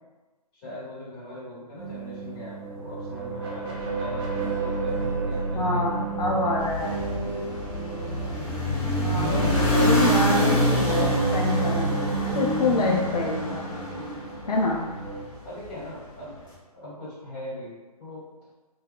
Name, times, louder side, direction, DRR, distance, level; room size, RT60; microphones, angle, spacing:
voice 1, 0.5-6.0 7.9-8.3 14.4-14.8 15.4-16.4 16.7-17.7 18.0-18.2, left 1 dB, 35° left, -8 dB, 1.4 m, -41 dB
sound 1, 1.8-15.2, right 4 dB, 40° right, 0.6 m, -32 dB
sound 2, 3.7-13.2, right 1 dB, 60° left, 1.1 m, -35 dB
voice 2, 5.5-7.0 9.0-11.9 12.3-13.7 14.5-14.8, left 3 dB, 80° left, -2 dB, 0.4 m, -27 dB
sound 3, 6.6-14.9, equal, 20° left, 1.0 m, -26 dB
2.6 x 2.2 x 2.3 m, 1.2 s
figure-of-eight pair, 135°, 20 cm